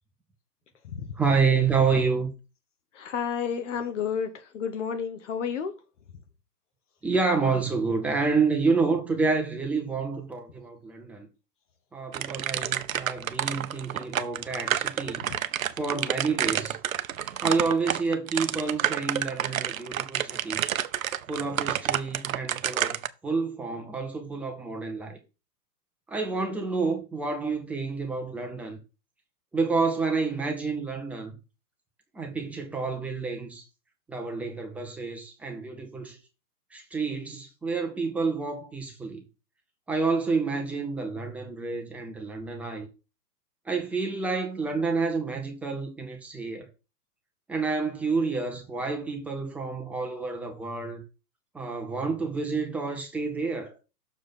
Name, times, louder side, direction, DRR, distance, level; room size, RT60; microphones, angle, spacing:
voice 1, 1.2-2.3 7.0-11.3 11.9-15.3 15.8-16.8 17.4-20.6 21.3-25.2 26.1-28.8 29.5-31.3 32.1-33.6 34.1-36.2 36.7-39.2 39.9-42.9 43.7-46.7 47.5-51.0 51.5-53.7, right 4 dB, 5° right, 0.5 m, -29 dB
voice 2, 3.0-5.7, left 7 dB, 45° left, 1.1 m, -31 dB
sound 1, 12.1-23.1, right 10 dB, 55° right, 0.7 m, -29 dB
6.6 x 4.8 x 5.6 m
figure-of-eight pair, 110°, 50 cm